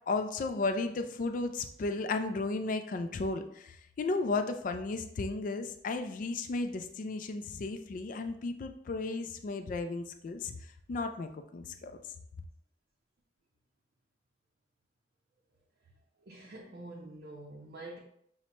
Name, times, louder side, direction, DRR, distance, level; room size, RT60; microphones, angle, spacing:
voice 1, 0.1-10.5 10.9-11.9, left 3 dB, 50° left, 7 dB, 0.3 m, -34 dB
voice 2, 16.2-18.0, right 2 dB, 60° right, -2 dB, 0.5 m, -46 dB
5.7 x 2.1 x 2.9 m, 0.71 s
head